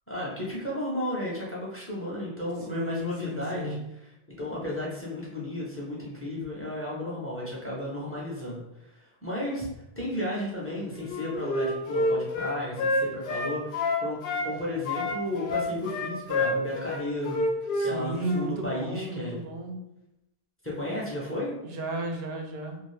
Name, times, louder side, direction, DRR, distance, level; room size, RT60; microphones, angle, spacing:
voice 1, 0.1-3.7 4.4-8.6 8.9-9.7 10.0-14.2 14.4-17.4 17.8-19.4 20.6-21.5, left 1 dB, 15° left, -5 dB, 0.6 m, -33 dB
voice 2, 2.7-3.8 17.8-19.8 21.6-22.8, right 1 dB, 75° right, 3 dB, 0.8 m, -33 dB
Wind instrument woodwind instrument, 11.1-14.5 14.8-17.9 18.2-18.4, left 2 dB, 65° left, 0.7 m, -28 dB
2.6 x 2.4 x 3.2 m, 0.87 s
omnidirectional pair, 1.0 m